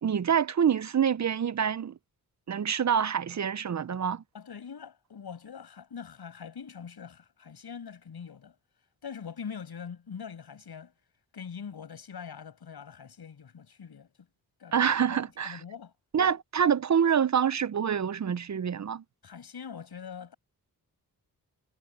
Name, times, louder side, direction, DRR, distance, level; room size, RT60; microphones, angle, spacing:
voice 1, 0.0-2.0 2.5-4.2 14.7-15.6 16.1-19.0, right 8 dB, 45° right, 0.6 m, -26 dB
voice 2, 4.3-8.5 9.0-10.9 11.3-14.3 14.6-15.9 19.2-20.3, left 7 dB, 75° left, 6.1 m, -43 dB
cardioid pair, 60°, 39 cm